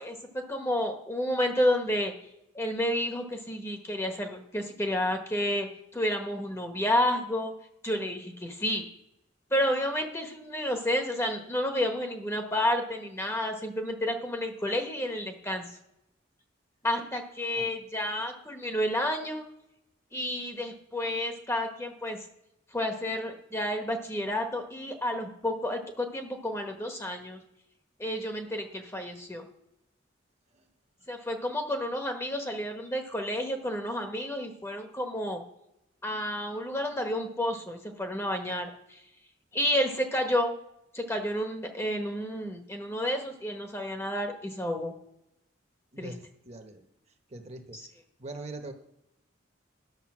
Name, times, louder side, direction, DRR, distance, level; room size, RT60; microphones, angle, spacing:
voice 1, 0.0-2.1 2.5-5.7 5.9-7.5 7.8-8.8 9.5-15.6 16.8-19.4 20.1-22.2 22.7-27.4 28.0-29.5 31.1-35.4 36.0-38.7 39.5-40.5 40.9-44.9 46.0-46.1 47.7-47.9, left 1 dB, 15° left, 4 dB, 1.1 m, -30 dB
voice 2, 45.9-46.8 47.3-47.8 48.2-48.7, right 2 dB, 35° right, 5 dB, 1.1 m, -42 dB
10.5 x 6.8 x 6.1 m, 0.83 s
head